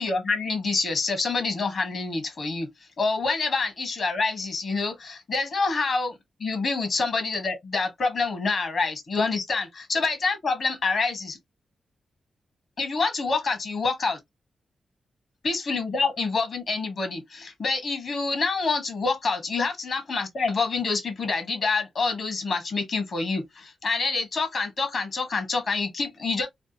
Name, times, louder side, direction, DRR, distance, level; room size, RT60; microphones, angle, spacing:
voice 1, 0.0-2.7 3.0-11.4 12.8-14.2 15.4-26.5, left 4 dB, 65° left, 1.3 m, -27 dB
3.4 x 2.5 x 2.8 m
cardioid pair, 75°, 0 cm